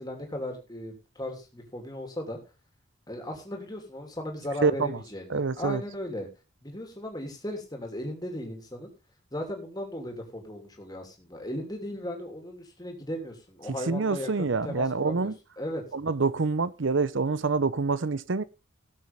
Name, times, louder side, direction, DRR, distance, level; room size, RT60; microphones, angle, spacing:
voice 1, 0.0-2.4 3.1-6.3 6.6-8.9 9.3-15.3 15.6-15.8, left 1 dB, 20° left, 2.8 m, -36 dB
voice 2, 4.6-5.0 5.3-5.8 13.9-15.3 15.9-18.4, right 4 dB, 75° right, 0.7 m, -26 dB
18.0 x 7.4 x 3.5 m
head